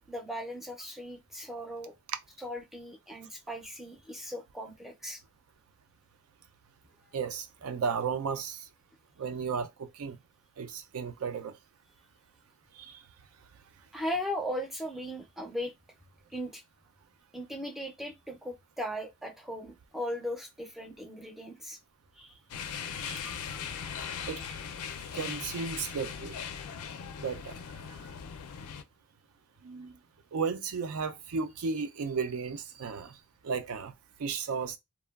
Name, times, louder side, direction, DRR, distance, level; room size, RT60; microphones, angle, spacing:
voice 1, 0.1-1.9 2.4-5.2 13.9-15.7 16.3-16.6 17.3-21.8 22.2-22.4, equal, ahead, 0.4 m, -38 dB
voice 2, 7.1-8.6 9.2-10.2 10.6-11.5 12.8-13.0 22.9-23.6 24.2-24.6 25.1-26.4 27.2-27.6 27.9-28.0 29.6-29.9 30.3-33.2 33.4-33.9 34.2-34.8, right 5 dB, 80° right, 0.4 m, -34 dB
sound 1, 22.5-28.8, left 7 dB, 85° left, 0.4 m, -39 dB
2.9 x 2.2 x 2.2 m
head